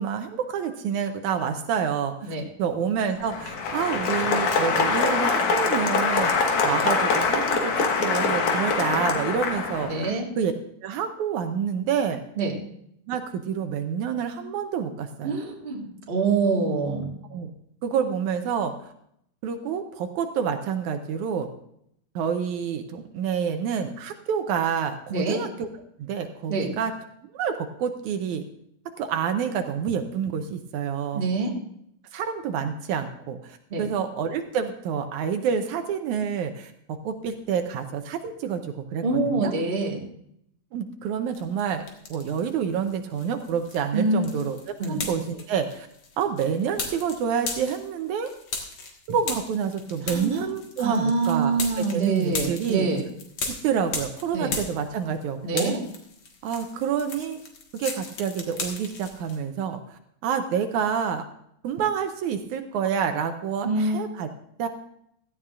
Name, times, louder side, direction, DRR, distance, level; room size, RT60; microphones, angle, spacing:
voice 1, 0.0-9.9 10.4-10.5 10.8-12.2 13.1-15.4 17.3-17.5 17.8-18.9 19.4-21.5 22.2-25.7 26.0-26.9 27.3-28.4 29.0-31.3 32.1-39.5 40.7-41.8 42.1-44.6 44.9-45.9 46.2-48.3 49.1-52.9 53.5-55.7 56.4-57.4 57.7-61.2 61.6-64.3 64.6-64.7, right 7 dB, 75° right, 7 dB, 2.1 m, -28 dB
Applause, 3.2-10.1, left 4 dB, 70° left, 2.8 m, -24 dB
voice 2, 9.8-10.2 12.4-12.5 15.2-17.1 25.1-25.4 26.5-26.7 31.1-31.5 33.7-33.9 39.0-40.0 43.9-44.3 44.8-45.0 50.0-50.4 50.8-53.0 54.3-54.5 55.4-55.8 63.6-64.0, right 3 dB, 25° right, -1 dB, 1.3 m, -25 dB
sound 1, 41.4-42.5 42.8-55.2 55.5-59.4, left 4 dB, 50° left, 2.2 m, -36 dB
16.5 x 13.5 x 2.5 m, 0.72 s
omnidirectional pair, 3.6 m